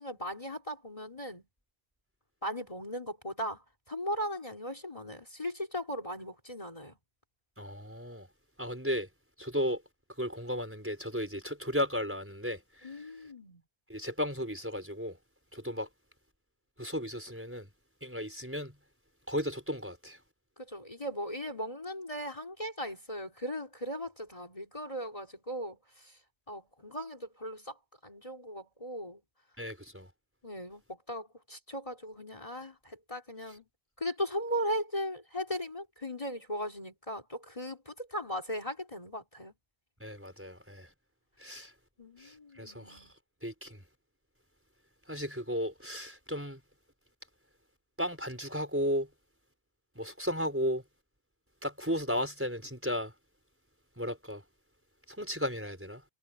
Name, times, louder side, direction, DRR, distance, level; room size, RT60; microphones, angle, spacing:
voice 1, 0.0-1.4 2.4-6.9 12.8-13.6 20.6-26.2 26.5-27.8 28.0-29.2 30.4-33.7 34.0-39.5 42.0-43.1, equal, 30° left, 3.2 m, -38 dB
voice 2, 7.6-8.3 8.6-9.1 9.4-9.8 10.2-13.1 13.9-15.2 15.5-15.9 16.8-17.7 18.0-18.7 19.3-20.2 29.6-30.1 40.0-40.9 41.4-41.7 42.2-43.1 43.4-43.8 45.1-46.6 48.0-49.1 49.9-50.8 51.6-53.1 54.0-54.4 55.1-56.0, equal, 10° right, 4.4 m, -35 dB
omnidirectional pair, 1.1 m